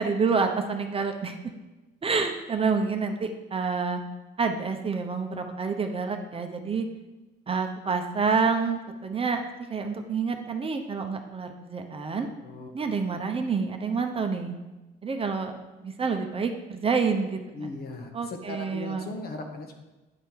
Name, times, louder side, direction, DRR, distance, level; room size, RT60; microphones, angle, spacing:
voice 1, 0.0-1.4 2.0-4.0 4.4-6.9 7.5-9.4 9.7-12.3 12.7-14.6 15.0-15.6 15.8-17.4 18.1-19.1, right 5 dB, 30° right, 5 dB, 0.8 m, -28 dB
voice 2, 12.4-12.8 17.5-19.8, left 3 dB, 50° left, 4 dB, 1.2 m, -38 dB
9.7 x 3.4 x 4.4 m, 1.1 s
supercardioid pair, 75°, 20 cm